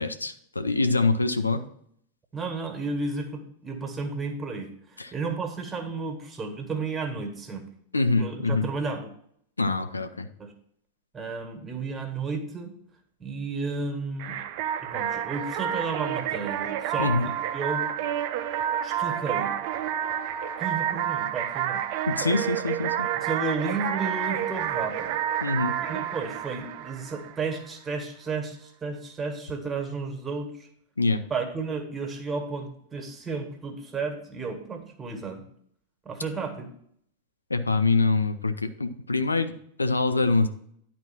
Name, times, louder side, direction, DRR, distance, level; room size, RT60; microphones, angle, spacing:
voice 1, 0.0-1.6 5.0-5.1 7.9-8.7 9.6-10.3 17.0-17.3 22.1-23.1 25.4-25.8 31.0-31.2 37.5-39.5 39.8-40.5, left 3 dB, 80° left, 9 dB, 0.6 m, -25 dB
voice 2, 2.3-7.6 8.1-9.1 10.4-10.5 11.1-12.7 13.2-14.4 14.8-18.0 18.8-19.5 20.6-21.8 22.2-22.3 23.1-25.2 25.8-30.7 31.3-35.4 36.0-36.7, right 4 dB, 15° right, 4 dB, 1.7 m, -33 dB
sound 1, 14.2-27.6, right 10 dB, 45° right, 0.6 m, -29 dB
10.5 x 4.2 x 5.9 m, 0.66 s
figure-of-eight pair, 90°, 0 cm